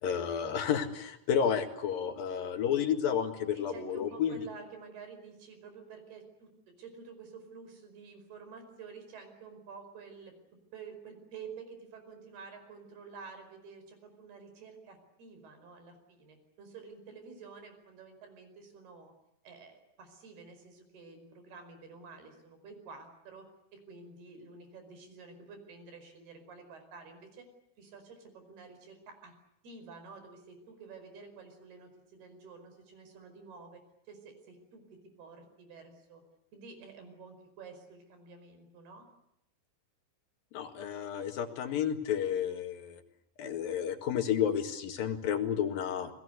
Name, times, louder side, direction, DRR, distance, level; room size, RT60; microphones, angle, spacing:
voice 1, 0.0-4.4 40.5-43.0 43.4-46.1, left 8 dB, 70° left, 6 dB, 3.6 m, -31 dB
voice 2, 3.5-6.5 6.8-10.3 10.7-19.1 19.4-23.5 23.7-27.5 27.8-29.3 29.6-33.8 34.1-34.8 35.2-36.2 36.5-39.1, right 5 dB, 90° right, 7 dB, 7.0 m, -50 dB
29.0 x 21.0 x 8.0 m, 0.80 s
omnidirectional pair, 4.4 m